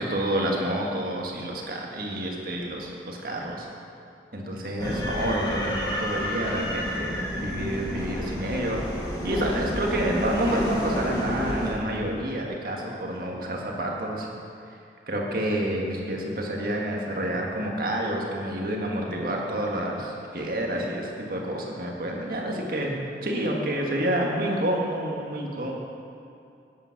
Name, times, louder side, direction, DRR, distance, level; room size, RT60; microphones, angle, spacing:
voice 1, 0.0-3.7 4.3-8.8 9.2-14.3 15.1-22.9 23.2-25.7, right 1 dB, 55° right, -1 dB, 1.7 m, -28 dB
sound 1, 4.8-11.7, equal, 20° left, 1.7 m, -30 dB
10.5 x 9.2 x 5.8 m, 2.5 s
head